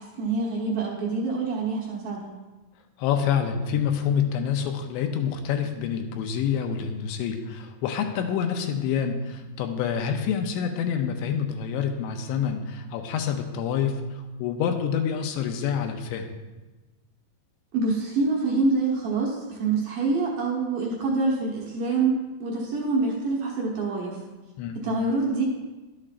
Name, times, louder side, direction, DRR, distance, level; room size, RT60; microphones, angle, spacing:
voice 1, 0.0-2.3 17.7-24.2 24.8-25.4, right 3 dB, 70° right, -3 dB, 2.2 m, -26 dB
voice 2, 3.0-16.3 24.6-24.7, left 7 dB, 80° left, 5 dB, 2.8 m, -27 dB
11.5 x 8.6 x 2.5 m, 1.2 s
omnidirectional pair, 5.3 m